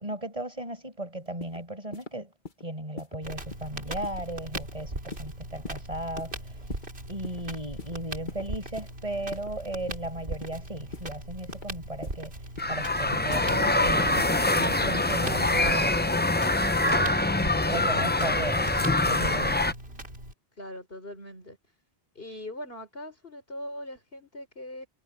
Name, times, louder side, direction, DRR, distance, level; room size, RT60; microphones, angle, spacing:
voice 1, 0.0-2.3 2.6-6.6 7.1-12.3 12.7-14.3 14.6-16.0 16.8-17.1 17.7-18.7 19.1-19.6, right 1 dB, 35° right, 6.2 m, -36 dB
sound 1, 1.2-1.6 1.9-2.1 2.4-2.6 3.0-3.1 3.5-3.7 4.0-4.2 4.5-4.7 5.1-5.3 5.6-5.8 6.2-6.3 6.7-6.9 7.2-7.4 7.8-7.9 8.3-8.4 8.8-8.9 9.3-9.5 9.9-10.1 10.4-10.6 10.9-11.1 11.5-11.7 12.0-12.2 12.6-12.7 13.1-13.3 13.7-13.8 14.2-14.4 14.7-14.9 15.2-15.9 17.3-17.9 18.5-19.5, left 3 dB, 50° left, 1.8 m, -42 dB
Crackle, 3.2-20.3, right 1 dB, 80° right, 4.5 m, -40 dB
sound 2, 12.6-19.7, left 2 dB, 15° left, 0.5 m, -24 dB
voice 2, 20.6-21.6 22.1-24.9, left 1 dB, 65° left, 4.6 m, -40 dB
omnidirectional pair, 1.0 m